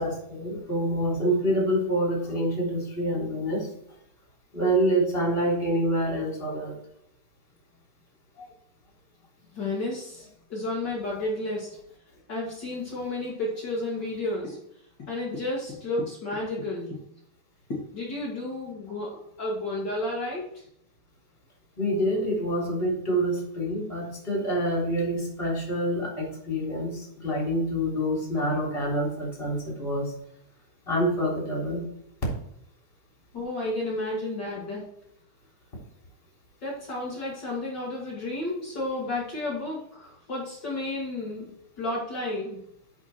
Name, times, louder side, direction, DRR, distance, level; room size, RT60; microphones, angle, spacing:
voice 1, 0.0-3.7 4.5-6.8 8.4-8.5 21.8-30.1 30.8-31.8, right 1 dB, 15° left, -3 dB, 2.9 m, -27 dB
voice 2, 9.5-11.8 12.3-14.6 15.0-17.0 17.7-20.6 33.3-34.8 36.6-41.5 41.8-42.6, left 2 dB, 50° left, -5 dB, 1.3 m, -32 dB
9.9 x 5.6 x 4.4 m, 0.72 s
omnidirectional pair, 5.4 m